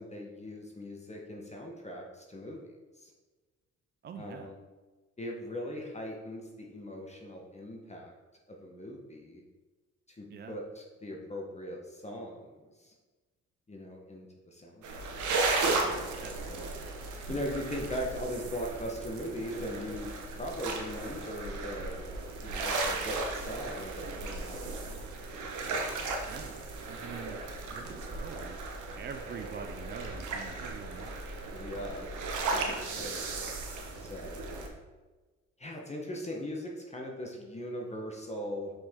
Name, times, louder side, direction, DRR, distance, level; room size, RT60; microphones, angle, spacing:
voice 1, 0.0-2.6 3.0-3.1 4.2-4.5 5.2-8.1 8.5-9.4 10.1-12.9 13.7-15.1 15.6-16.0 17.3-20.1 20.4-22.1 22.4-24.7 25.4-25.9 31.5-32.1 32.6-33.4 34.0-34.6 35.6-38.7, equal, 20° left, -1 dB, 1.1 m, -40 dB
voice 2, 4.0-4.5 10.3-10.6 16.2-16.9 26.3-26.5 26.8-31.4, right 7 dB, 35° right, 7 dB, 0.4 m, -45 dB
sound 1, 14.8-34.7, right 3 dB, 75° right, 1.1 m, -35 dB
6.1 x 4.8 x 3.6 m, 1.3 s
cardioid pair, 90°, 30 cm